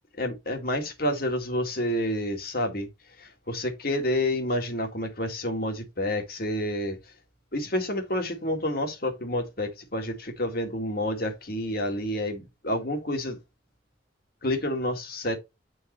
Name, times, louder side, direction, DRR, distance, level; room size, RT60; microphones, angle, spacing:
voice 1, 0.2-2.9 3.2-7.0 7.5-13.4 14.4-15.4, left 1 dB, 50° left, 2.0 m, -29 dB
8.8 x 4.8 x 3.1 m
head